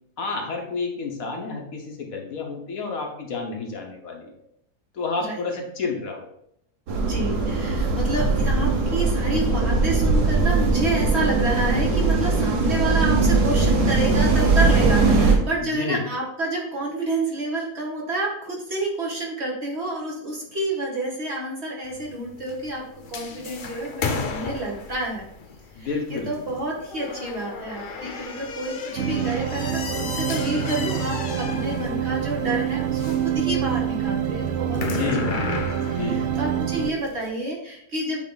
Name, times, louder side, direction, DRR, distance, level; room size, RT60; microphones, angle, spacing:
voice 1, 0.2-4.3 4.9-6.3 15.6-16.0 25.8-26.4 31.5-31.6 34.8-36.4, left 4 dB, 65° left, 1 dB, 1.3 m, -30 dB
sound 1, 6.9-15.4, right 3 dB, 85° right, 1.7 m, -20 dB
voice 2, 7.1-22.8 23.1-25.3 25.8-35.4 35.8-38.2, right 2 dB, 45° right, -3 dB, 1.6 m, -29 dB
sound 2, 21.8-37.3, left 4 dB, 80° left, 0.4 m, -34 dB
sound 3, 29.0-36.9, right 9 dB, 65° right, 0.7 m, -26 dB
8.5 x 3.2 x 3.9 m, 0.73 s
omnidirectional pair, 1.7 m